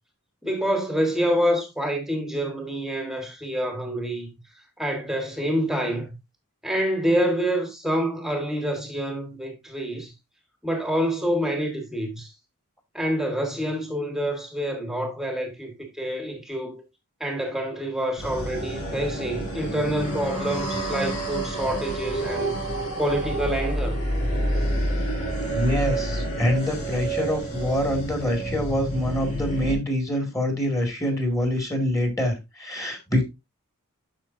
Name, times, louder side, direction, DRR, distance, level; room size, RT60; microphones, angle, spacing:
voice 1, 0.4-4.3 4.8-6.1 6.6-10.1 10.6-12.3 12.9-16.8 17.2-22.6 23.0-24.0, equal, ahead, 1.6 m, -27 dB
sound 1, 18.2-29.8, right 1 dB, 85° left, 5.5 m, -28 dB
voice 2, 25.5-33.3, left 1 dB, 15° left, 2.2 m, -25 dB
8.9 x 6.5 x 2.6 m
head